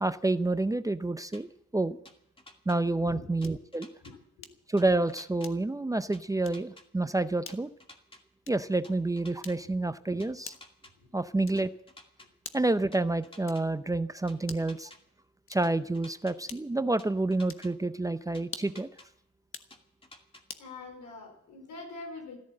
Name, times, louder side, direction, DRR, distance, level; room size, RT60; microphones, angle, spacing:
voice 1, 0.0-2.0 2.7-3.9 4.7-7.7 8.5-10.5 11.1-11.7 12.5-14.9 15.5-18.9, right 2 dB, 10° right, 12 dB, 0.6 m, -29 dB
sound 1, 1.3-1.4 2.0-2.8 3.4-4.1 4.8-5.5 6.1-6.8 7.5-8.2 8.8-9.6 10.2-10.9 11.6-12.3 12.9-13.6 14.3-15.0 15.6-16.3 17.0-17.7 18.3-19.1 19.7-20.4, left 2 dB, 20° left, 2.3 m, -52 dB
sound 2, 3.4-3.7 4.4-4.7 5.4-5.9 6.4-6.7 7.4-7.7 8.4-8.8 9.4-9.8 10.4-10.8 11.4-11.8 12.4-12.8 13.4-13.8 14.4-14.8 15.4-15.8 16.5-16.9 17.4-17.7 18.4-18.9 19.4-19.8 20.5-20.7, left 6 dB, 45° left, 1.3 m, -47 dB
voice 2, 4.0-4.5 20.6-22.4, left 3 dB, 85° left, 4 dB, 4.8 m, -44 dB
14.0 x 13.5 x 7.6 m, 0.73 s
cardioid pair, 90°, 30 cm